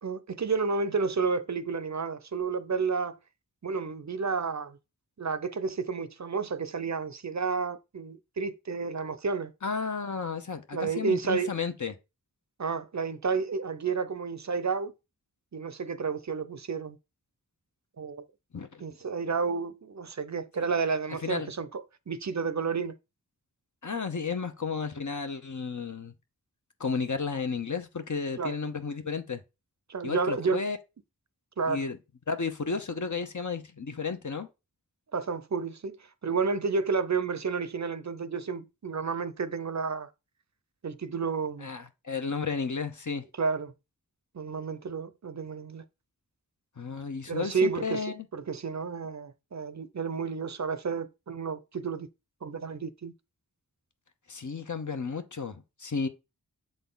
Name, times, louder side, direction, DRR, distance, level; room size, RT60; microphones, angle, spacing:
voice 1, 0.0-3.2 3.6-4.8 5.2-9.5 10.7-11.5 12.6-14.9 15.5-17.0 18.0-18.2 18.8-23.0 28.4-28.6 29.9-30.6 31.6-31.8 35.1-40.1 40.8-41.7 43.4-43.7 44.3-45.8 47.3-48.0 48.3-52.1 52.4-53.1, right 5 dB, 50° right, 0.6 m, -31 dB
voice 2, 9.6-11.9 18.5-18.8 21.2-21.5 23.8-26.1 26.8-29.4 30.0-30.8 31.7-32.0 32.3-34.5 41.6-43.2 46.8-48.2 54.3-56.1, left 5 dB, 55° left, 0.9 m, -33 dB
7.1 x 4.0 x 3.8 m
wide cardioid pair, 40°, 35 cm